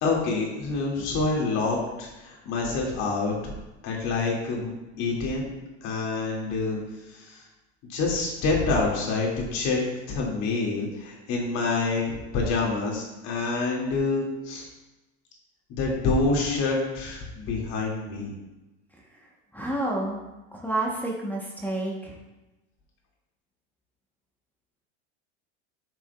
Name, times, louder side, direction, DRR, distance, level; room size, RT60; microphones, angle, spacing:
voice 1, 0.0-3.5 3.8-4.7 5.0-5.5 5.8-6.8 7.1-7.4 7.9-9.8 10.1-14.7 15.7-18.3, left 3 dB, 50° left, -2 dB, 2.3 m, -27 dB
voice 2, 19.5-20.2 20.5-22.2, right 2 dB, 5° left, -2 dB, 1.0 m, -29 dB
9.6 x 6.0 x 2.3 m, 1.0 s
supercardioid pair, 130°, 35 cm